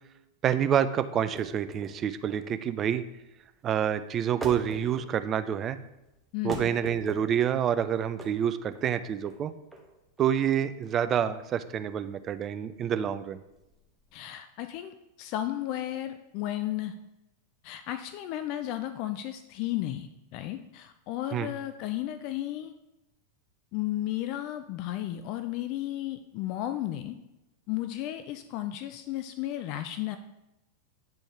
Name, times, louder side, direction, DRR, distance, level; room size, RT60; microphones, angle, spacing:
voice 1, 0.4-3.0 3.6-5.8 6.4-9.5 10.2-13.4 21.3-21.5, right 9 dB, 30° right, 12 dB, 0.4 m, -27 dB
sound 1, 1.3-14.1, right 1 dB, 5° right, 1.1 m, -45 dB
voice 2, 6.3-6.7 14.1-16.9 17.6-22.7 23.7-27.2 27.7-30.2, left 13 dB, 45° left, 10 dB, 0.3 m, -34 dB
9.4 x 4.1 x 3.2 m, 0.94 s
figure-of-eight pair, 90°, 0 cm